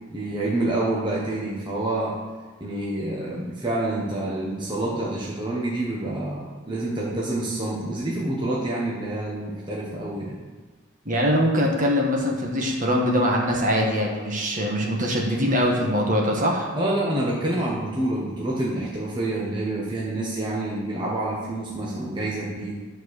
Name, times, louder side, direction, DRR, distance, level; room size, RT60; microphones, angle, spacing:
voice 1, 0.1-2.1 2.6-10.4 16.7-22.7, right 1 dB, 20° right, -5 dB, 1.2 m, -27 dB
voice 2, 11.0-16.7, equal, 40° right, 0 dB, 1.5 m, -22 dB
11.5 x 4.7 x 6.5 m, 1.3 s
head